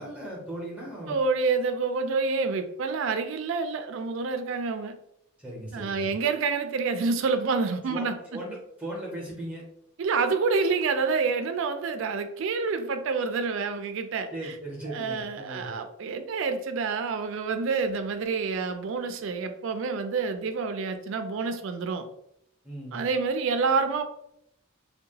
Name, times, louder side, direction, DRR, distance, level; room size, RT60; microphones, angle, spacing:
voice 1, 0.0-1.2 5.4-6.1 7.9-9.6 14.3-15.7 22.6-23.0, right 1 dB, 5° right, -3 dB, 0.6 m, -38 dB
voice 2, 1.1-4.9 5.7-8.1 10.0-14.5 14.9-22.0 22.9-24.0, right 4 dB, 60° right, 8 dB, 0.3 m, -28 dB
2.7 x 2.2 x 2.7 m, 0.76 s
head